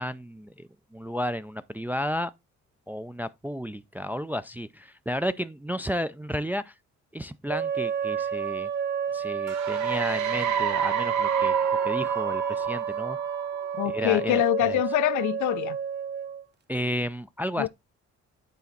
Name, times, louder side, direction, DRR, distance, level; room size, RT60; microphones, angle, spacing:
voice 1, 0.0-2.3 2.9-6.7 7.1-8.7 9.1-11.6 11.8-13.2 13.8-14.8 16.7-17.7, equal, 5° right, 0.3 m, -32 dB
sound 1, 7.5-16.4, right 7 dB, 35° right, 0.8 m, -30 dB
sound 2, 9.5-14.0, right 8 dB, 75° right, 1.0 m, -30 dB
voice 2, 13.8-15.8 17.6-17.7, left 15 dB, 75° left, 0.5 m, -25 dB
8.3 x 4.2 x 3.9 m
cardioid pair, 90°, 30 cm